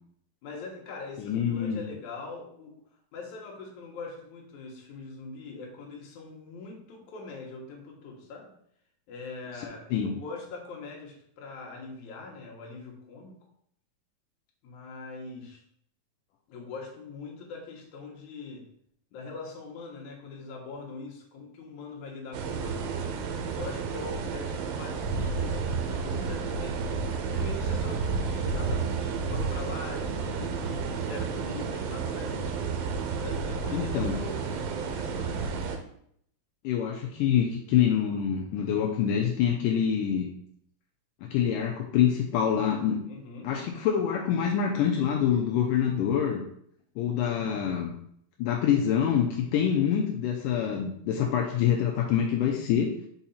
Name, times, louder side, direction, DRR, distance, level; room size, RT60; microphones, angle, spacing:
voice 1, 0.4-2.8 3.1-8.5 9.1-13.4 14.6-15.6 16.5-18.7 19.1-23.0 23.5-26.8 27.3-32.6 33.2-35.6 43.1-43.5, left 3 dB, 65° left, 0 dB, 2.3 m, -42 dB
voice 2, 1.2-1.8 9.9-10.1 33.7-34.1 36.6-40.3 41.3-43.0 43.4-46.4 47.0-47.9 48.4-52.9, left 8 dB, 80° left, 0 dB, 2.0 m, -26 dB
sound 1, 22.3-35.8, right 5 dB, 85° right, 2.4 m, -31 dB
5.6 x 4.4 x 4.2 m, 0.68 s
omnidirectional pair, 4.1 m